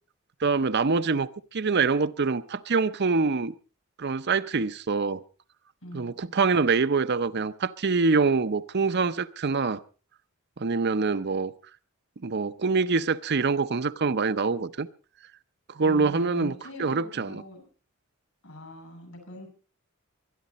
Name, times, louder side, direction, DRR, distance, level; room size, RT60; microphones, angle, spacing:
voice 1, 0.4-3.5 4.0-5.2 5.9-9.8 10.6-11.5 12.2-14.9 15.7-16.5 16.8-17.4, right 4 dB, 50° right, 0.6 m, -25 dB
voice 2, 5.8-6.1 15.8-17.6 18.4-19.5, left 1 dB, 70° left, 6.7 m, -42 dB
23.5 x 11.0 x 4.1 m
head